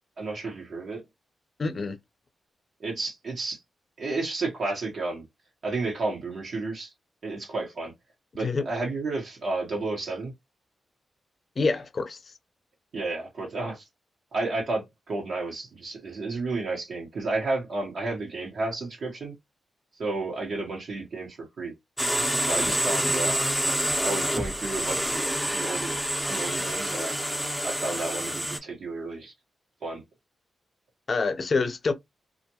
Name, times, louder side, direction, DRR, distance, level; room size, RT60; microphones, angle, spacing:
voice 1, 0.2-1.0 2.8-3.6 4.0-5.2 5.6-6.9 7.2-7.9 8.3-10.3 12.9-13.8 14.3-19.4 20.0-21.7 22.4-23.4 24.0-26.0 26.3-27.2 27.6-29.3 29.8-30.0, right 3 dB, 70° right, 1.0 m, -32 dB
voice 2, 1.6-2.0 8.4-8.6 11.6-12.3 31.1-31.9, left 4 dB, 55° left, 0.6 m, -26 dB
sound 1, 22.0-28.6, equal, 5° right, 0.7 m, -27 dB
2.4 x 2.2 x 2.8 m
supercardioid pair, 45°, 0 cm